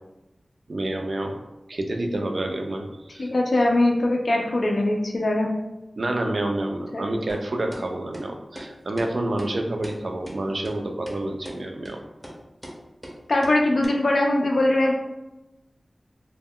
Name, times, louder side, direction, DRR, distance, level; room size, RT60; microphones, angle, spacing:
voice 1, 0.7-1.4 1.7-3.3 6.0-12.0, right 1 dB, 65° right, 3 dB, 0.3 m, -28 dB
voice 2, 3.2-5.5 6.9-7.1 13.3-14.9, left 1 dB, 75° left, 0 dB, 0.3 m, -21 dB
sound 1, 7.3-7.4 7.7-7.8 8.1-8.3 8.6-8.7 9.0-9.1 9.4-9.5 9.8-10.0 10.3-10.4 10.6-10.7 11.1-11.2 11.4-11.6 11.9-12.0 12.2-12.4 12.6-12.8 13.0-13.2 13.4-13.6 13.8-13.9, equal, 10° right, 0.5 m, -39 dB
2.1 x 2.1 x 3.5 m, 1.0 s
wide cardioid pair, 80°, 0 cm